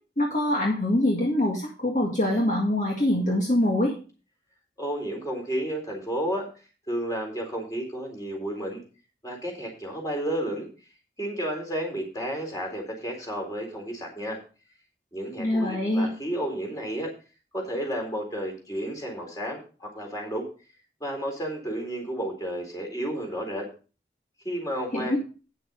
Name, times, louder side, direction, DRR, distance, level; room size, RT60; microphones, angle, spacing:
voice 1, 0.2-3.9 15.4-16.1 24.9-25.2, left 1 dB, 45° left, -2 dB, 2.0 m, -24 dB
voice 2, 4.8-6.5 6.9-8.8 9.2-10.7 11.2-14.4 15.1-17.1 17.5-20.5 21.0-23.7 24.4-25.2, right 1 dB, 20° left, 1 dB, 3.9 m, -32 dB
9.6 x 7.7 x 5.0 m, 0.35 s
head